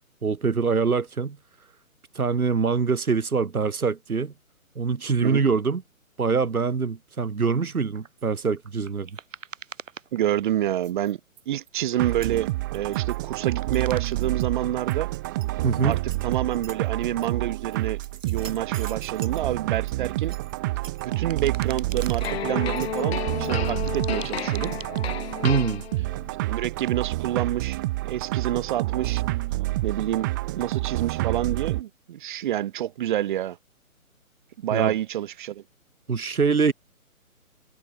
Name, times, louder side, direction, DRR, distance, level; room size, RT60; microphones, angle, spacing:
voice 1, 0.2-1.4 2.1-4.3 4.8-5.8 6.2-9.1 15.6-16.0 25.4-25.8 34.7-34.9 36.1-36.7, right 5 dB, 80° right, 2.6 m, -24 dB
sound 1, 7.9-10.6 10.8-13.2 13.5-14.4 14.8-17.3 17.7-19.4 19.7-22.3 22.8-25.2, right 7 dB, 60° right, 2.4 m, -44 dB
voice 2, 10.1-11.2 11.5-15.1 15.8-18.0 18.2-20.4 21.0-24.7 26.4-29.2 29.8-33.6 34.6-35.6, right 12 dB, 35° right, 2.1 m, -28 dB
sound 2, 12.0-31.8, right 19 dB, 15° right, 0.8 m, -28 dB
sound 3, 22.2-26.3, left 9 dB, 45° left, 3.1 m, -32 dB
figure-of-eight pair, 145°, 43 cm